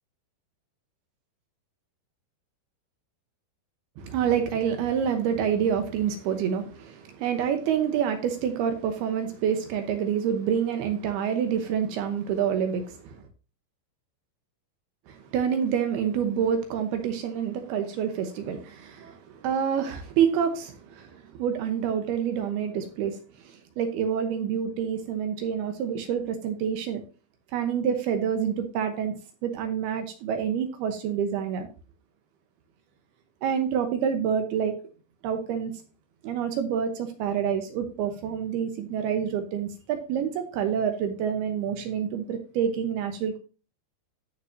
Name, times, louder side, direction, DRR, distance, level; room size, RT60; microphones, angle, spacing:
voice 1, 4.0-13.2 15.1-27.0 27.5-29.1 29.4-31.7 33.4-34.8 35.2-35.7 36.2-43.4, right 8 dB, 75° right, 2.6 m, -27 dB
14.0 x 6.0 x 2.7 m
omnidirectional pair, 5.3 m